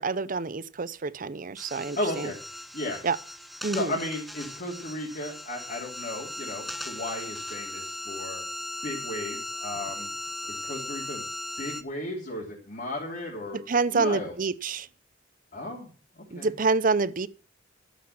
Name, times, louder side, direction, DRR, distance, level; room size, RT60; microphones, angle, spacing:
voice 1, 0.0-2.3 3.0-3.2 3.6-3.9 13.5-14.9 16.3-17.3, right 4 dB, 45° right, 0.7 m, -27 dB
sound 1, 1.6-11.8, left 1 dB, ahead, 0.6 m, -38 dB
voice 2, 2.0-2.4 2.7-3.0 3.7-8.4 8.8-10.1 10.5-11.3 11.6-13.6 13.9-14.3 15.5-15.9 16.1-16.5, left 1 dB, 50° left, 3.3 m, -34 dB
12.5 x 8.3 x 5.9 m
head